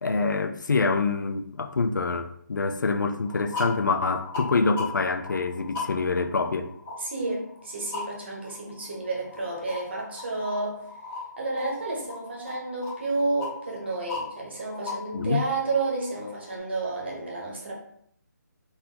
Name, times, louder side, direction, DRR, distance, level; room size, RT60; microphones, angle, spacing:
voice 1, 0.0-6.7 15.1-15.4, left 4 dB, 75° left, 0.5 m, -26 dB
sound 1, 3.2-16.6, left 4 dB, 5° left, 0.4 m, -39 dB
voice 2, 7.0-10.8 11.4-17.7, right 3 dB, 35° right, 0.9 m, -31 dB
4.0 x 2.9 x 3.7 m
hypercardioid pair, 180°, 10 cm